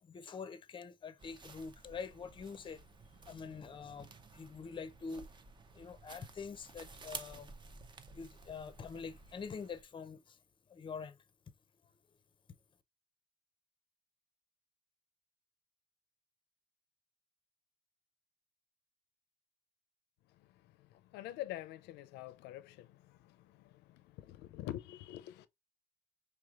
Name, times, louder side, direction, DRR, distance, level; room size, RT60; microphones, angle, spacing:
voice 1, 0.0-2.8 3.3-5.3 5.7-7.5 8.1-10.4 10.7-11.2, left 5 dB, 30° left, 0.6 m, -45 dB
sound 1, 1.2-9.8, right 4 dB, 25° right, 0.7 m, -53 dB
voice 2, 21.1-23.0 24.2-25.5, left 14 dB, 85° left, 0.5 m, -44 dB
4.8 x 3.5 x 2.4 m
cardioid pair, 110°, 17 cm